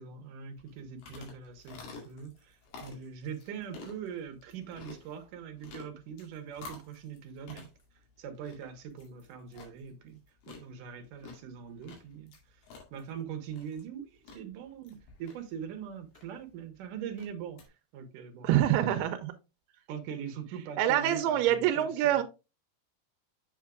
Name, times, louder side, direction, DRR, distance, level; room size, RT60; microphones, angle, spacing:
voice 1, 0.0-7.7 8.2-10.2 10.5-12.6 12.9-17.6 17.9-18.5 19.9-22.2, right 7 dB, 70° right, 2.2 m, -42 dB
sound 1, 0.6-17.7, left 4 dB, 75° left, 4.1 m, -52 dB
voice 2, 18.4-19.3 20.8-22.2, right 12 dB, 85° right, 2.6 m, -25 dB
7.6 x 7.2 x 2.3 m
omnidirectional pair, 4.6 m